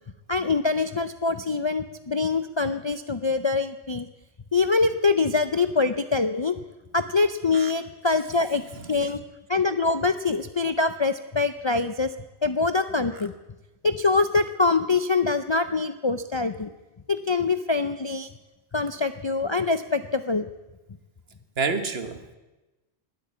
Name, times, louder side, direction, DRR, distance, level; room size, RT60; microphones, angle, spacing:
voice 1, 0.3-4.1 4.5-6.6 6.9-8.6 8.9-9.2 9.5-12.1 12.4-13.3 13.8-16.7 17.1-18.3 18.7-20.5, left 4 dB, 35° left, 9 dB, 0.4 m, -24 dB
voice 2, 21.6-22.3, right 4 dB, 60° right, 9 dB, 1.5 m, -29 dB
20.0 x 8.5 x 8.2 m, 1.1 s
omnidirectional pair, 1.2 m